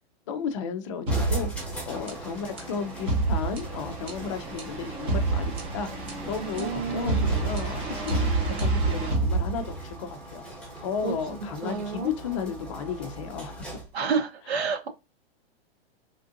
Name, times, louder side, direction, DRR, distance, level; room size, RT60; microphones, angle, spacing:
voice 1, 0.3-5.9 6.3-10.5 10.8-13.7, left 6 dB, 30° left, 0.4 m, -34 dB
sound 1, 1.1-14.0, right 1 dB, 5° left, 1.1 m, -41 dB
sound 2, 1.1-10.0, right 3 dB, 15° right, 0.8 m, -28 dB
voice 2, 6.6-7.3 11.0-11.1 11.6-12.1 13.9-14.9, right 5 dB, 80° right, 1.4 m, -29 dB
3.4 x 2.5 x 2.5 m
hypercardioid pair, 155°, 31 cm